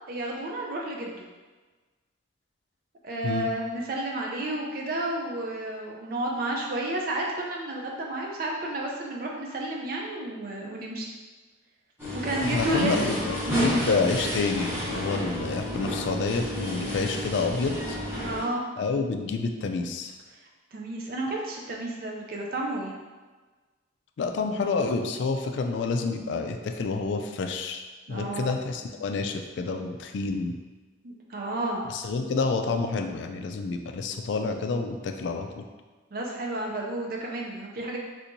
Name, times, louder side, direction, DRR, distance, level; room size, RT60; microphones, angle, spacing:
voice 1, 0.1-1.3 3.0-11.1 12.1-13.2 13.5-13.7 18.2-18.6 20.7-22.9 28.1-28.5 31.0-31.8 36.1-38.0, right 1 dB, 50° right, -1 dB, 0.4 m, -31 dB
sound 1, 12.0-18.4, equal, 15° right, 0.9 m, -31 dB
voice 2, 12.4-18.0 18.8-20.1 24.2-27.8 28.1-30.6 31.9-35.6, left 4 dB, 70° left, 5 dB, 0.3 m, -28 dB
3.3 x 2.9 x 2.6 m, 1.3 s
head